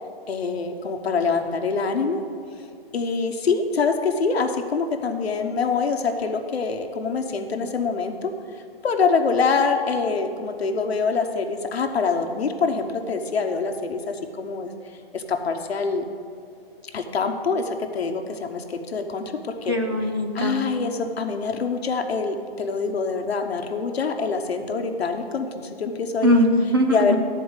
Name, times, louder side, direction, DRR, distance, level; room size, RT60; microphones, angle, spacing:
voice 1, 0.3-2.2 2.9-8.3 8.8-14.7 15.1-16.0 16.9-19.7 20.3-25.5 25.8-26.5 26.9-27.2, left 4 dB, 80° left, 4 dB, 1.0 m, -25 dB
voice 2, 19.7-20.6 26.2-27.2, equal, 25° right, 3 dB, 0.4 m, -20 dB
11.0 x 4.6 x 8.0 m, 2.4 s
hypercardioid pair, 160°, 31 cm